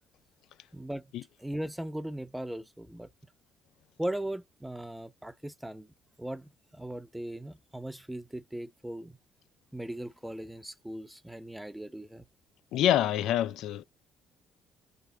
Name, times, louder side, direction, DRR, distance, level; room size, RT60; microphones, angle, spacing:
voice 1, 0.7-1.1 1.4-3.1 4.0-5.9 6.2-9.2 9.7-12.2, right 1 dB, 5° right, 0.6 m, -38 dB
voice 2, 12.7-13.8, left 11 dB, 60° left, 0.4 m, -26 dB
3.3 x 3.3 x 2.8 m
figure-of-eight pair, 50°, 0 cm